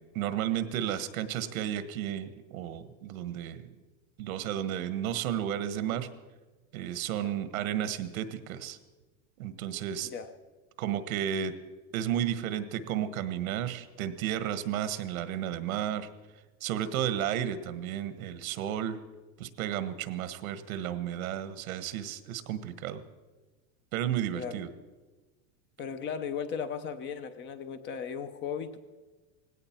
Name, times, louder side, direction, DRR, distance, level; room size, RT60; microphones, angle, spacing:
voice 1, 0.0-3.7 4.2-6.1 6.7-8.8 9.4-10.1 10.8-11.5 11.9-16.1 16.6-19.0 19.4-23.0 23.9-24.7, right 10 dB, 90° right, 12 dB, 1.4 m, -33 dB
voice 2, 10.0-10.3 24.3-24.6 25.8-28.8, left 7 dB, 25° left, 11 dB, 0.8 m, -36 dB
18.5 x 16.5 x 4.5 m, 1.3 s
supercardioid pair, 160°, 41 cm